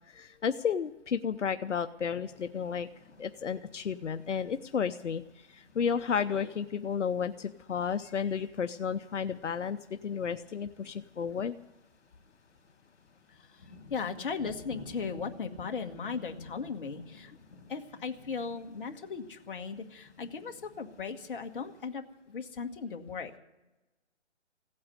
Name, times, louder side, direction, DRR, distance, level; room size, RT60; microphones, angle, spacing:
voice 1, 0.1-2.9 3.2-11.6, left 7 dB, 80° left, 9 dB, 0.8 m, -32 dB
sound 1, 2.3-21.9, left 3 dB, 65° left, 3.0 m, -55 dB
voice 2, 13.3-17.3 17.7-23.4, left 5 dB, 45° left, 4 dB, 1.5 m, -37 dB
16.5 x 8.6 x 9.5 m, 1.1 s
hypercardioid pair, 160°, 36 cm